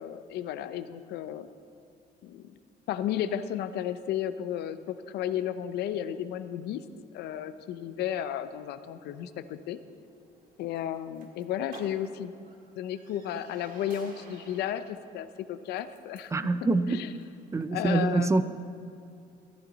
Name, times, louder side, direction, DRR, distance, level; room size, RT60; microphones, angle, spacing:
voice 1, 0.0-1.5 2.2-2.5 2.9-6.8 7.1-9.8 10.6-12.3 12.8-16.4 16.9-17.1 17.7-18.3, left 10 dB, 75° left, 12 dB, 0.7 m, -33 dB
sound 1, 7.7-17.8, right 3 dB, 55° right, 2.0 m, -55 dB
voice 2, 16.3-17.0 17.5-18.4, right 3 dB, 15° right, 12 dB, 0.5 m, -25 dB
14.5 x 13.0 x 4.0 m, 2.7 s
cardioid pair, 110°, 17 cm